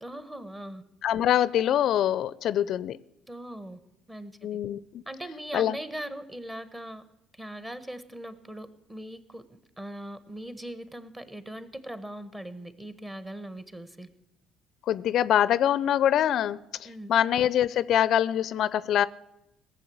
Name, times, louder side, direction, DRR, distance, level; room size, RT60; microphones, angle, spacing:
voice 1, 0.0-0.8 3.3-3.8 4.1-4.6 5.0-7.0 7.3-9.4 9.8-14.1 16.8-17.1, right 1 dB, 15° right, 1.5 m, -40 dB
voice 2, 1.0-3.0 4.4-5.0 5.5-5.8 14.9-19.1, left 10 dB, 60° left, 0.4 m, -24 dB
17.5 x 7.2 x 8.6 m
hypercardioid pair, 60°, 0 cm